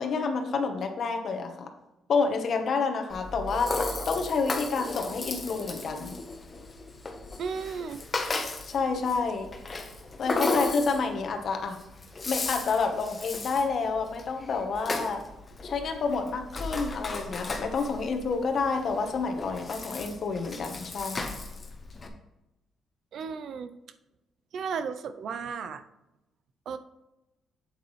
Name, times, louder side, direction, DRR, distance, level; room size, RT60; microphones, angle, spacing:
voice 1, 0.0-1.7 2.1-3.8 4.1-6.1 8.7-9.5 10.2-11.8 12.3-15.2 15.6-21.3, left 4 dB, 55° left, 4 dB, 1.2 m, -29 dB
Rattle (instrument), 3.1-22.1, left 3 dB, 30° left, 1.2 m, -35 dB
voice 2, 7.4-8.0 23.1-23.7 24.5-25.8 26.7-26.8, right 6 dB, 65° right, 10 dB, 0.6 m, -34 dB
8.2 x 8.1 x 3.2 m, 0.95 s
cardioid pair, 90°, 0 cm